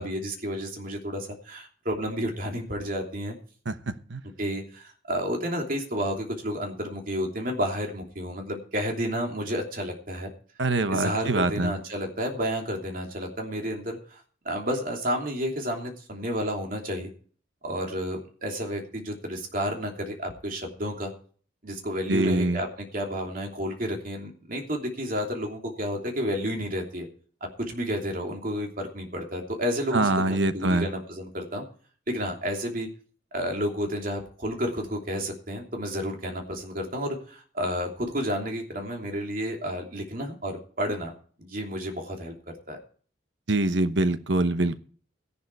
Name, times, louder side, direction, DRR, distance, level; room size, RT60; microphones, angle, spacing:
voice 1, 0.0-3.3 4.4-10.3 10.9-17.1 17.6-21.1 21.6-27.1 27.4-31.6 32.1-32.9 33.3-41.1 41.4-42.3 42.7-42.8, equal, 45° right, 2 dB, 3.0 m, -31 dB
voice 2, 10.6-11.7 22.1-22.6 29.9-30.9 43.5-44.8, right 2 dB, 70° right, 11 dB, 1.0 m, -24 dB
13.5 x 11.0 x 4.7 m, 0.43 s
head